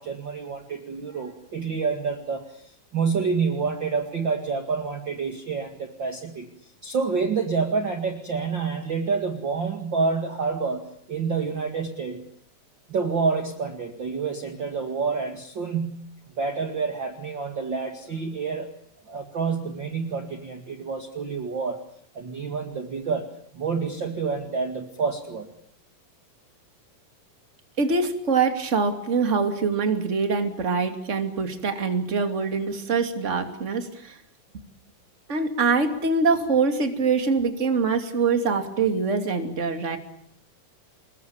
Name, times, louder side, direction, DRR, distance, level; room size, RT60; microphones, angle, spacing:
voice 1, 0.0-2.6 2.9-6.5 6.8-12.2 12.9-16.1 16.4-18.7 19.1-21.8 22.1-23.3 23.5-25.5, right 5 dB, 40° right, 4 dB, 2.5 m, -28 dB
voice 2, 27.8-34.2 35.3-40.0, right 4 dB, 25° right, 6 dB, 2.7 m, -24 dB
27.5 x 21.5 x 8.8 m, 0.66 s
omnidirectional pair, 3.6 m